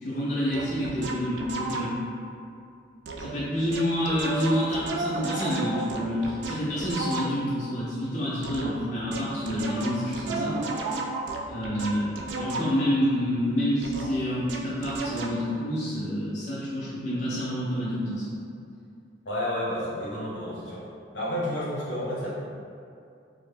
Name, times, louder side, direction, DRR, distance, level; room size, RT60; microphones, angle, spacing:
voice 1, 0.0-2.0 3.2-10.6 11.5-18.4, equal, 40° left, -10 dB, 0.5 m, -28 dB
sound 1, 0.5-2.1 3.1-3.4 3.7-7.6 8.4-12.9 13.8-15.4, right 2 dB, 75° right, 0.3 m, -33 dB
voice 2, 19.2-20.8 21.1-22.3, left 1 dB, 75° left, -7 dB, 0.9 m, -30 dB
3.1 x 2.1 x 3.3 m, 2.4 s
head